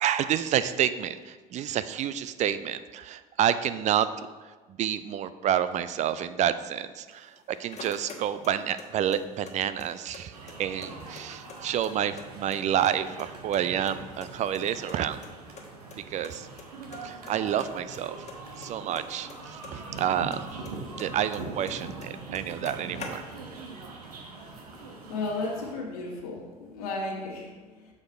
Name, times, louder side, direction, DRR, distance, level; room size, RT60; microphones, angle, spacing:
voice 1, 0.0-4.1 4.8-7.3 7.6-10.3 10.6-15.2 16.0-16.5 17.0-18.2 18.6-20.5 21.0-23.2, right 10 dB, 35° right, 13 dB, 0.4 m, -29 dB
sound 1, 7.1-8.9 9.1-10.2 10.5-10.6 10.8-12.2 12.5-13.3 13.5-15.0 15.2-15.3 15.6-15.7 15.9-16.0 16.2-16.6 16.9-17.3 17.6-20.0 20.3-21.7 22.0-22.1 22.3-23.6, left 5 dB, 35° left, 1.2 m, -45 dB
sound 2, 10.3-25.7, right 3 dB, 75° right, 1.0 m, -42 dB
voice 2, 25.1-27.9, left 2 dB, 70° left, -3 dB, 1.6 m, -34 dB
7.3 x 4.8 x 4.6 m, 1.3 s
figure-of-eight pair, 65°, 20 cm